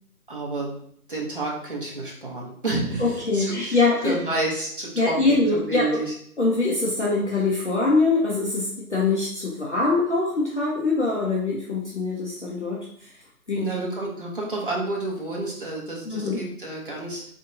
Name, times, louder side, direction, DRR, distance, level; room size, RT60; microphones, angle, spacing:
voice 1, 0.3-0.7 1.1-6.1 13.5-17.3, right 2 dB, 35° right, -4 dB, 0.8 m, -30 dB
voice 2, 3.0-4.2 5.0-6.0 6.4-13.1 13.5-13.7 16.1-16.4, left 3 dB, 50° left, -4 dB, 0.6 m, -23 dB
4.3 x 2.6 x 2.6 m, 0.65 s
figure-of-eight pair, 175°, 46 cm